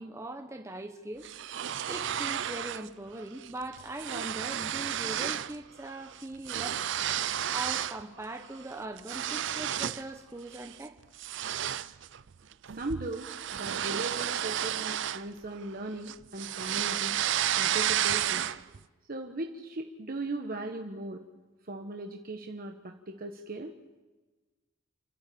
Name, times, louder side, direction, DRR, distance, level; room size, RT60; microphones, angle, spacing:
voice 1, 0.0-1.3 1.9-6.9 7.5-11.0, right 2 dB, 15° right, 0.9 m, -40 dB
sound 1, 1.2-2.9 3.2-3.5 3.7-5.6 5.8-8.0 8.4-10.1 10.5-10.8 11.2-15.7 16.1-18.8, right 10 dB, 65° right, 0.6 m, -32 dB
voice 2, 12.7-17.2 17.6-18.5 19.1-21.3 21.6-23.7, right 2 dB, 45° right, 1.2 m, -38 dB
28.0 x 12.0 x 8.5 m
head